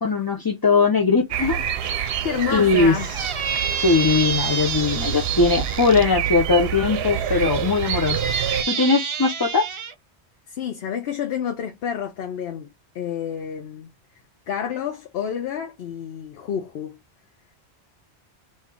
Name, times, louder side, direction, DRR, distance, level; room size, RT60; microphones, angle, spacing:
voice 1, 0.0-1.6 2.5-2.9 3.8-8.2 8.7-9.7, left 4 dB, 35° left, 0.4 m, -20 dB
sound 1, 1.3-8.6, right 9 dB, 70° right, 0.8 m, -27 dB
voice 2, 2.2-3.1 10.5-13.9 14.5-17.0, left 9 dB, 70° left, 0.9 m, -29 dB
Squeak, 3.0-6.0 6.9-9.9, right 7 dB, 50° right, 0.4 m, -29 dB
3.1 x 2.8 x 3.6 m
omnidirectional pair, 1.1 m